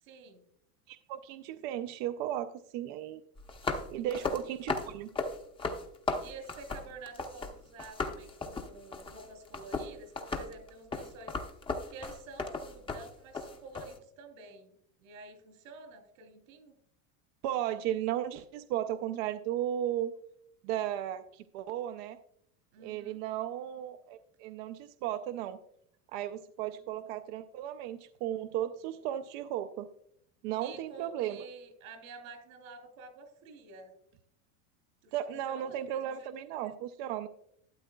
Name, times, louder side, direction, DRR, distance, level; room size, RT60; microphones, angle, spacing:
voice 1, 0.0-0.5 3.9-4.7 6.2-11.4 11.9-14.7 15.0-16.7 22.7-23.2 26.6-26.9 30.6-33.9 35.0-36.3, right 3 dB, 85° right, 6 dB, 3.1 m, -49 dB
voice 2, 0.9-3.2 3.9-5.1 17.4-20.1 20.6-22.2 22.8-25.6 26.1-29.9 30.4-31.4 35.1-37.3, right 11 dB, 55° right, 9 dB, 0.5 m, -35 dB
sound 1, 3.4-7.5 7.8-14.0, left 3 dB, 15° left, 0.7 m, -36 dB
12.0 x 9.2 x 2.3 m, 0.71 s
supercardioid pair, 140°, 40 cm